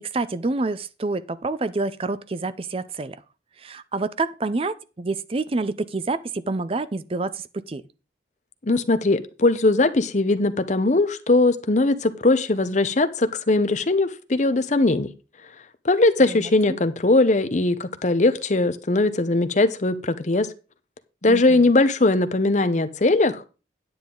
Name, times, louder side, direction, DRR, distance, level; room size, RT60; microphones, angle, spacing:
voice 1, 0.0-3.2 3.6-7.8 16.3-16.5 21.3-21.6, right 3 dB, 30° right, 0.5 m, -28 dB
voice 2, 8.7-15.1 15.8-20.5 21.2-23.5, left 2 dB, 40° left, 0.8 m, -20 dB
9.6 x 8.8 x 3.8 m
head